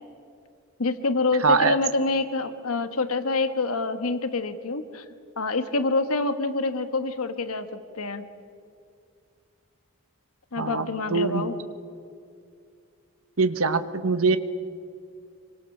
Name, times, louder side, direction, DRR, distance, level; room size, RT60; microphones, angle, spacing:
voice 1, 0.8-5.0 5.4-8.2 10.5-11.5, left 3 dB, 90° left, 9 dB, 1.4 m, -26 dB
voice 2, 1.4-1.7 10.6-11.5 13.4-14.4, right 4 dB, 75° right, 11 dB, 1.3 m, -23 dB
26.5 x 25.0 x 6.7 m, 2.3 s
head